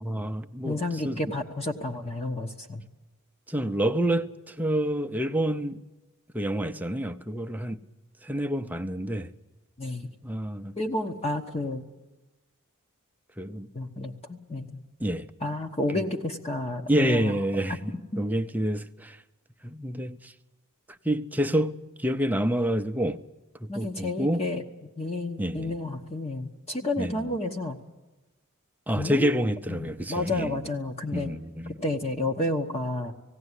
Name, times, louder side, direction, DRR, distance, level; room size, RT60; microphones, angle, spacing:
voice 1, 0.0-1.2 3.5-5.8 6.3-7.8 8.2-9.3 10.2-10.7 13.4-13.7 15.0-15.3 16.9-19.2 19.6-20.3 21.0-23.2 23.6-24.5 25.4-25.7 27.0-27.2 28.9-30.7 31.1-31.8, equal, 10° right, 0.6 m, -28 dB
voice 2, 0.6-2.8 9.8-10.1 10.8-11.8 13.7-14.8 15.4-17.3 17.7-18.2 23.7-24.6 25.0-27.8 28.9-29.3 29.7-31.3 31.8-33.1, left 2 dB, 30° left, 1.1 m, -31 dB
18.5 x 16.5 x 9.8 m
head